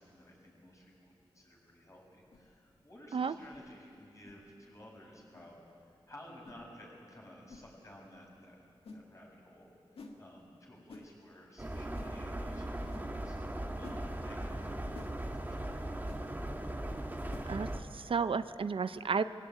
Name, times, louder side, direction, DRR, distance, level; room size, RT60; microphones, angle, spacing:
voice 1, 0.0-5.6 6.1-8.6 8.9-13.4 13.8-16.0, left 1 dB, 35° left, -2 dB, 7.5 m, -55 dB
sound 1, 2.3-2.5 3.4-3.6 4.2-4.4 5.3-5.5 6.4-6.6 7.5-7.7 8.8-9.0 10.0-10.2 10.9-11.1 11.9-12.1 12.9-13.1 13.8-14.0 14.9-15.1 16.1-16.2 17.3-17.5, left 3 dB, 85° left, 1.9 m, -50 dB
sound 2, 11.6-17.8, right 1 dB, 20° right, 1.9 m, -38 dB
voice 2, 17.9-19.2, right 5 dB, 70° right, 12 dB, 0.6 m, -32 dB
22.5 x 16.0 x 9.3 m, 2.6 s
cardioid pair, 60°, 10 cm